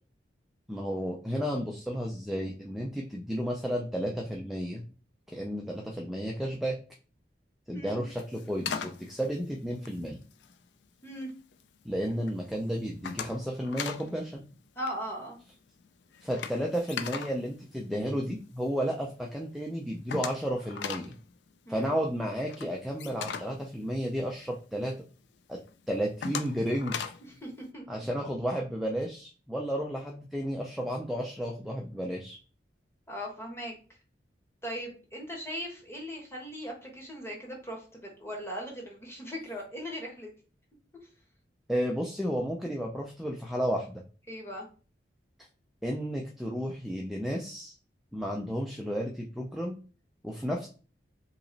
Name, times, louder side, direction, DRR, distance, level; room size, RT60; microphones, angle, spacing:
voice 1, 0.7-4.9 5.3-6.8 7.7-10.2 11.8-14.4 16.2-21.1 21.7-24.9 25.5-25.6 25.9-27.0 27.9-32.4 41.7-44.0 45.8-47.7 48.1-49.8 50.2-50.7, equal, ahead, 0 dB, 0.4 m, -32 dB
sound 1, 8.1-10.6 11.1-11.6 12.0-12.3 12.6-14.1 14.4-14.5 14.8-18.5 18.9-19.0 19.3-19.4 19.6-24.7 25.1-25.2 25.7-27.3, left 6 dB, 75° left, 0.4 m, -39 dB
voice 2, 14.8-15.4 21.6-21.9 27.2-28.1 33.1-33.7 34.6-40.3 44.3-44.7, equal, 15° left, -1 dB, 1.1 m, -39 dB
3.0 x 2.9 x 3.9 m, 0.37 s
head